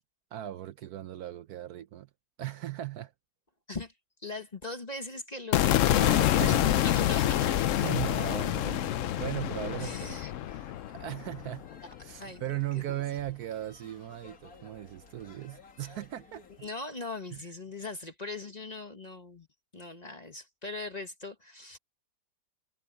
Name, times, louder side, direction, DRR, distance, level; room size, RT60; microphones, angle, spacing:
voice 1, 0.3-2.1 2.4-3.1 5.9-6.7 7.4-11.7 12.0-16.4 17.3-17.4, right 13 dB, 70° right, 1.0 m, -38 dB
voice 2, 4.2-7.5 9.8-10.3 12.1-12.6 12.9-13.0 16.6-19.5 19.7-21.8, left 3 dB, 25° left, 1.1 m, -40 dB
sound 1, 5.5-11.8, left 12 dB, 90° left, 0.6 m, -27 dB
sound 2, 6.4-16.7, left 4 dB, 50° left, 2.5 m, -56 dB
omnidirectional pair, 2.0 m